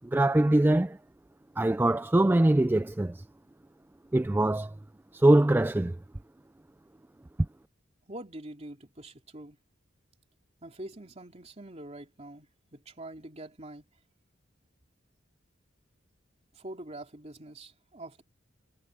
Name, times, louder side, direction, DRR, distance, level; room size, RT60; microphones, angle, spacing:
voice 1, 0.1-1.0 1.6-3.2 4.1-4.7 5.1-6.0, right 1 dB, 10° right, 0.3 m, -23 dB
voice 2, 8.1-9.6 10.6-13.9 16.5-18.2, right 1 dB, 35° right, 3.1 m, -44 dB
head